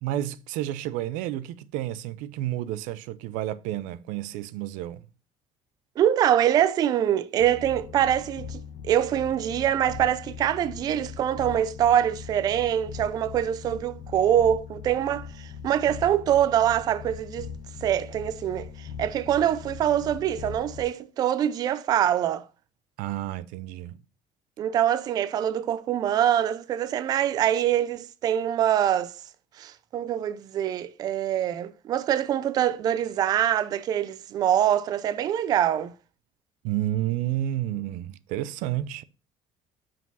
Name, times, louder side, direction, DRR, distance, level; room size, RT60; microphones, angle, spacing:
voice 1, 0.0-5.0 23.0-24.0 36.6-39.0, right 13 dB, 85° right, 0.5 m, -30 dB
voice 2, 6.0-17.5 17.8-22.5 24.6-29.1 29.6-35.9, right 10 dB, 30° right, 0.4 m, -24 dB
sound 1, 7.4-20.8, left 7 dB, 55° left, 1.1 m, -41 dB
6.0 x 4.8 x 5.4 m
cardioid pair, 180°, 13 cm